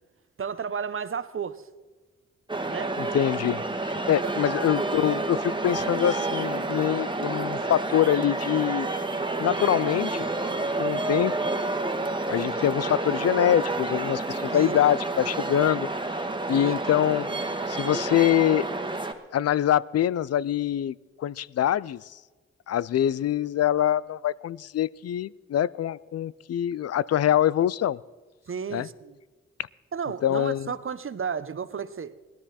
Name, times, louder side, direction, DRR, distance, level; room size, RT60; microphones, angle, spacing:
voice 1, 0.4-1.7 2.6-3.0 4.2-4.3 14.5-14.8 16.5-16.8 28.5-29.2 29.9-32.1, right 6 dB, 45° right, 0.9 m, -33 dB
sound 1, 2.5-19.1, right 2 dB, 15° right, 1.5 m, -29 dB
voice 2, 3.0-8.9 9.4-10.3 10.8-11.4 12.3-15.9 16.5-17.3 17.7-18.6 19.3-22.0 22.7-28.0 28.7-28.9 30.2-30.7, left 11 dB, 55° left, 0.5 m, -24 dB
18.0 x 12.5 x 4.2 m
supercardioid pair, 40°, 30 cm